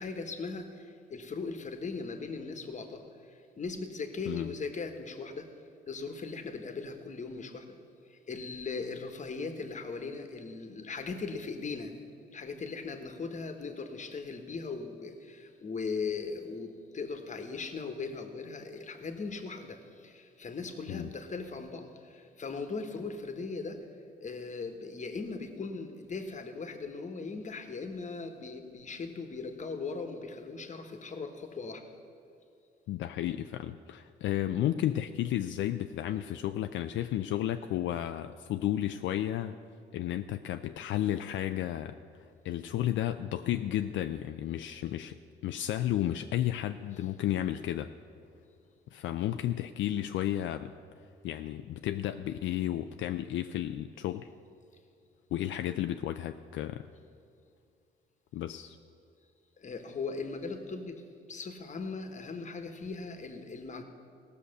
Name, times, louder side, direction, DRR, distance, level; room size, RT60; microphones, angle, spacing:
voice 1, 0.0-5.5 5.9-7.8 8.1-12.0 12.3-23.8 24.2-31.8 59.6-61.0 61.3-63.8, left 4 dB, 40° left, 6 dB, 1.3 m, -39 dB
voice 2, 32.9-39.6 39.9-45.2 45.4-47.9 48.9-50.7 51.2-54.3 55.3-56.9 58.3-58.8, left 12 dB, 75° left, 8 dB, 0.4 m, -32 dB
16.0 x 6.5 x 6.6 m, 2.4 s
cardioid pair, 90°, 20 cm